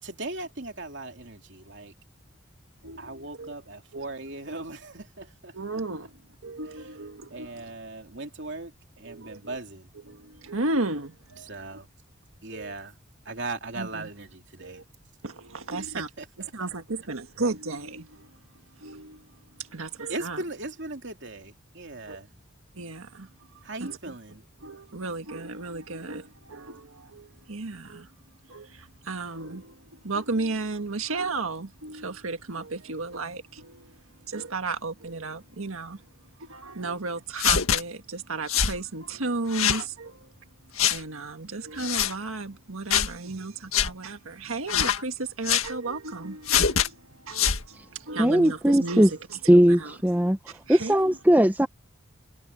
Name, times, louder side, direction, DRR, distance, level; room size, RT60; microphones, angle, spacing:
voice 1, 0.0-1.9 3.0-6.1 6.6-6.9 7.3-8.7 9.0-9.9 11.4-11.9 12.4-13.0 13.2-14.8 15.8-16.7 20.1-22.3 23.6-24.4, right 2 dB, 55° right, 3.1 m, -38 dB
voice 2, 2.8-3.5 3.9-4.0 5.5-6.1 6.4-7.6 9.0-9.6 10.1-11.5 12.5-12.7 13.8-14.1 14.6-14.8 15.2-16.1 16.5-18.3 18.8-19.3 19.6-20.4 22.1-22.2 22.7-23.3 23.8-24.0 24.6-28.1 28.5-33.9 34.3-36.0 36.4-40.3 40.9-49.1 49.5-50.0 50.7-51.2, right 3 dB, 85° right, 1.7 m, -34 dB
sound 1, 37.4-37.8 38.5-38.8 39.5-39.8 40.8-41.0 41.8-42.1 42.9-43.1 43.7-43.9 44.7-45.0 45.4-45.7 46.5-46.9 47.3-47.6, left 8 dB, 85° left, 1.9 m, -23 dB
voice 3, 48.2-49.1 49.5-50.4 50.7-51.7, equal, 10° right, 0.7 m, -19 dB
head